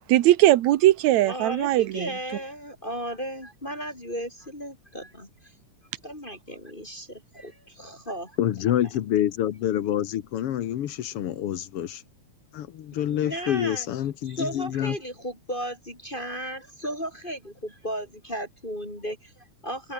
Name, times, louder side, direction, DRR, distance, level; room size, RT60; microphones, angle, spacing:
voice 1, 0.1-2.1, right 15 dB, 70° right, 2.2 m, -19 dB
voice 2, 1.3-5.3 6.0-8.4 13.1-13.9 14.2-19.9, equal, 15° left, 4.1 m, -35 dB
voice 3, 8.4-12.0 12.5-15.0, left 11 dB, 60° left, 1.7 m, -27 dB
open air
omnidirectional pair, 3.6 m